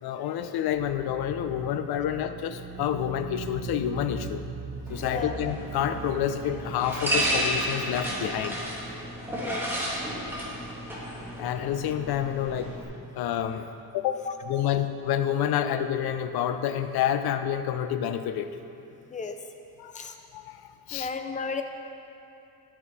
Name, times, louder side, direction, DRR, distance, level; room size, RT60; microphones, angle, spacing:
voice 1, 0.0-4.4 4.9-8.6 9.5-9.6 11.4-12.8 13.2-13.7 13.9-18.5 19.8-21.1, left 10 dB, 75° left, 10 dB, 0.6 m, -29 dB
sound 1, 0.6-9.3, right 4 dB, 90° right, 1.3 m, -41 dB
sound 2, 4.9-12.8, equal, 5° right, 1.4 m, -32 dB
voice 2, 5.0-5.4 9.4-9.6 14.2-14.3 19.1-19.4 19.9-20.1 20.9-21.6, left 4 dB, 20° left, 6 dB, 0.4 m, -33 dB
11.0 x 6.3 x 4.1 m, 2.8 s
cardioid pair, 180°, 37 cm